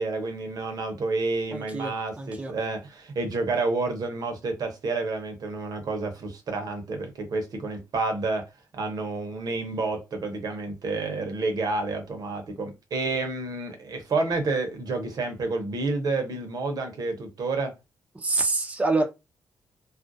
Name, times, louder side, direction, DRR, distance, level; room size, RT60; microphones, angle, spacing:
voice 1, 0.0-8.4 8.7-17.7, right 3 dB, 60° right, 0.8 m, -29 dB
voice 2, 1.5-2.5 18.1-19.0, right 3 dB, 20° right, 0.5 m, -26 dB
2.4 x 2.1 x 2.6 m
supercardioid pair, 55°, 8 cm